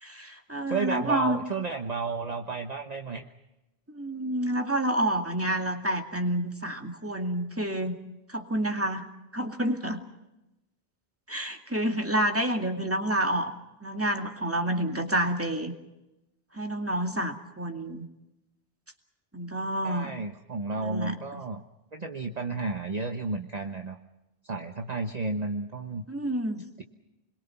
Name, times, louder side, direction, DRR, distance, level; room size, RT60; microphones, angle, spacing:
voice 1, 0.0-1.4 3.9-8.0 8.3-9.1 9.3-10.0 11.3-13.5 13.8-15.7 16.5-18.1 19.3-20.1 20.8-21.2 26.1-26.6, right 1 dB, 15° right, 4 dB, 2.4 m, -29 dB
voice 2, 0.7-3.3 19.8-21.6 21.9-24.0 24.4-26.0, right 3 dB, 40° right, 4 dB, 1.3 m, -32 dB
29.5 x 22.5 x 5.9 m, 0.96 s
omnidirectional pair, 1.1 m